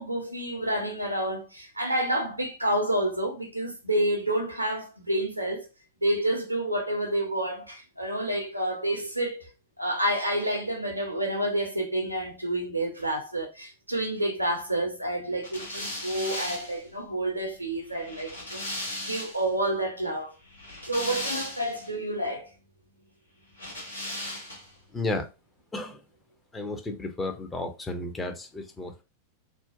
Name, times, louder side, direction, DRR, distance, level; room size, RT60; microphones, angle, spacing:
voice 1, 0.0-5.6 6.0-9.5 9.8-20.3 20.9-22.5, right 1 dB, 85° right, 0.6 m, -29 dB
sound 1, 15.4-19.5 20.4-21.9 23.5-24.8, left 1 dB, 80° left, 0.9 m, -37 dB
voice 2, 24.9-25.3 25.7-26.0 26.5-29.0, left 2 dB, 15° left, 0.5 m, -33 dB
2.6 x 2.1 x 2.5 m
figure-of-eight pair, 90°, 0 cm